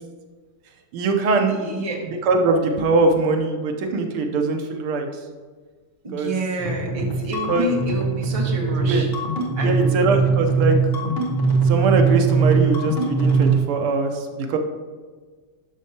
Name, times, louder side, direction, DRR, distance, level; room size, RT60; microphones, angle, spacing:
voice 1, 0.9-5.1 6.1-6.3 7.5-7.7 8.8-9.0 9.6-10.8 11.6-14.6, right 3 dB, 80° right, 4 dB, 1.7 m, -22 dB
voice 2, 1.5-2.0 6.0-9.1 9.6-10.0, equal, 25° right, 0 dB, 0.8 m, -28 dB
sound 1, 6.6-13.6, right 5 dB, 40° left, 1.5 m, -21 dB
12.0 x 6.4 x 2.8 m, 1.4 s
omnidirectional pair, 2.4 m